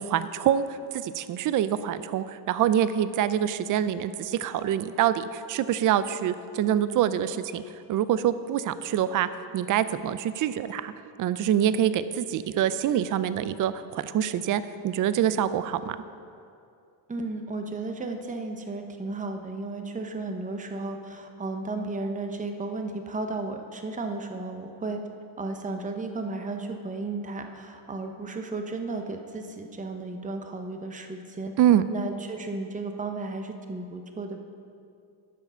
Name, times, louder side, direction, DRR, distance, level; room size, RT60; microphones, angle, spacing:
voice 1, 0.0-7.6 7.9-9.3 9.5-10.9 11.2-16.0 31.6-31.8, right 10 dB, 40° right, 14 dB, 0.5 m, -25 dB
voice 2, 17.1-25.0 25.4-31.5 31.9-34.4, right 3 dB, 15° right, 5 dB, 0.8 m, -34 dB
13.0 x 5.9 x 5.6 m, 2.5 s
cardioid pair, 100°, 49 cm